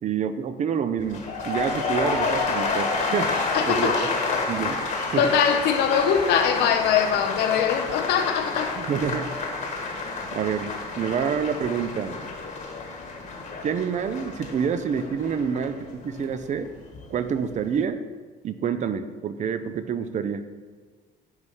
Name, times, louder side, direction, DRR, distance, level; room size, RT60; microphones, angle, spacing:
voice 1, 0.0-3.3 3.7-3.9 4.4-4.8 5.1-5.3 8.8-9.3 10.3-12.2 13.6-16.7 17.1-18.0 18.4-20.5, right 7 dB, 45° right, 11 dB, 0.6 m, -27 dB
sound 1, 1.0-17.1 17.4-17.8, left 3 dB, 50° left, 1.4 m, -29 dB
voice 2, 3.5-4.1 5.2-8.8, left 8 dB, 85° left, 6 dB, 0.8 m, -22 dB
9.3 x 3.3 x 5.5 m, 1.5 s
cardioid pair, 110°, 17 cm